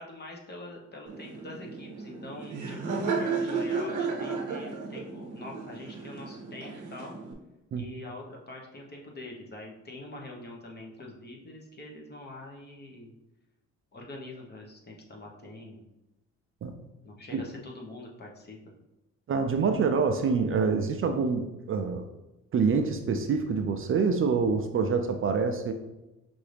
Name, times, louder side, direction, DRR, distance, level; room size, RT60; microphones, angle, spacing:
voice 1, 0.0-7.2 7.7-13.1 13.9-15.8 17.0-18.6 20.5-20.7, left 2 dB, 35° left, -1 dB, 1.1 m, -44 dB
Laughter, 1.1-7.3, right 4 dB, 80° right, 0.9 m, -33 dB
voice 2, 19.3-22.1 22.5-25.7, right 5 dB, 45° right, 6 dB, 0.4 m, -26 dB
5.6 x 2.6 x 3.3 m, 0.99 s
cardioid pair, 90°, 30 cm